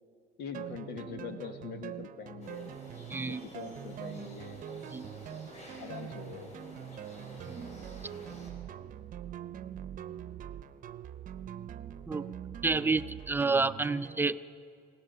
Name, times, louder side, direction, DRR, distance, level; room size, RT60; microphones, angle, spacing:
voice 1, 0.4-2.8 3.3-4.6 5.8-6.5 6.9-7.0, left 6 dB, 80° left, 6 dB, 1.7 m, -43 dB
sound 1, 0.5-14.3, right 10 dB, 50° right, 0.7 m, -43 dB
sound 2, 2.4-8.5, left 1 dB, 45° left, 5.5 m, -51 dB
voice 2, 3.1-3.5 4.9-5.1 7.5-7.8 12.1-12.3 12.6-14.4, right 3 dB, 10° right, 12 dB, 0.5 m, -29 dB
24.0 x 17.5 x 6.8 m, 2.3 s
cardioid pair, 110°, 17 cm